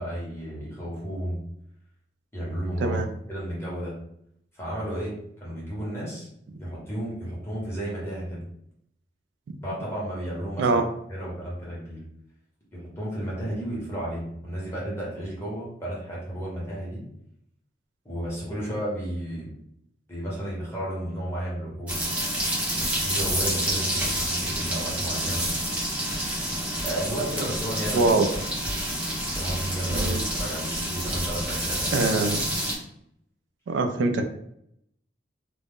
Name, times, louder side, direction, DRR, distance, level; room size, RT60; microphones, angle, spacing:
voice 1, 0.0-1.4 2.3-3.0 3.3-3.9 4.5-5.1 5.4-6.3 6.6-8.4 9.6-10.8 11.1-12.0 12.8-17.0 18.0-19.6 20.1-22.1 23.0-25.5 26.8-28.1 29.3-32.0, right 1 dB, 15° left, -6 dB, 1.0 m, -32 dB
sound 1, 21.9-32.8, right 1 dB, 10° right, 0.7 m, -28 dB
voice 2, 27.9-28.3 29.9-30.2 31.9-32.5 33.7-34.2, right 3 dB, 85° right, 7 dB, 0.3 m, -23 dB
2.4 x 2.1 x 3.5 m, 0.73 s
head